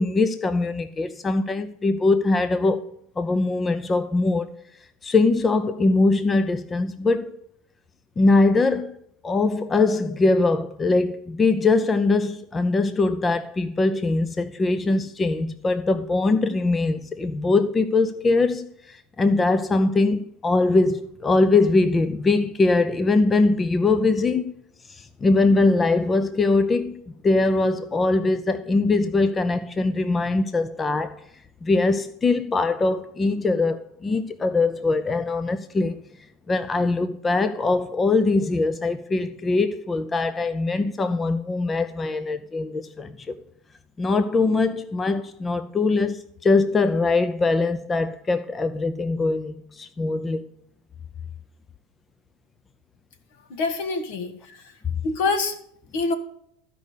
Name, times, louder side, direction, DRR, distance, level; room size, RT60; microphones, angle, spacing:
voice 1, 0.0-2.9 3.2-4.5 5.0-7.4 8.2-8.9 9.2-24.5 24.9-31.2 31.6-36.0 36.5-43.3 44.0-50.5, left 3 dB, 20° left, 0.5 m, -22 dB
voice 2, 53.5-54.6 55.0-55.6 55.9-56.1, left 3 dB, 65° left, 1.8 m, -25 dB
14.0 x 5.3 x 6.6 m
supercardioid pair, 125°, 0 cm